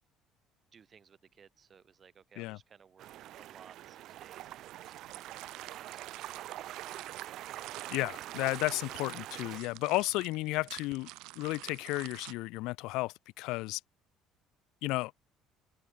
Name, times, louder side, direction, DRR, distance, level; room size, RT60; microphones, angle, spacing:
voice 1, 0.7-5.4 5.7-6.7, right 7 dB, 25° right, 6.0 m, -60 dB
sound 1, 3.0-9.6, right 14 dB, 55° right, 1.9 m, -44 dB
sound 2, 4.3-12.3, right 23 dB, 90° right, 5.0 m, -49 dB
voice 2, 7.9-11.1 11.4-13.8 14.8-15.1, left 21 dB, 80° left, 2.3 m, -33 dB
open air
cardioid pair, 165°, 0 cm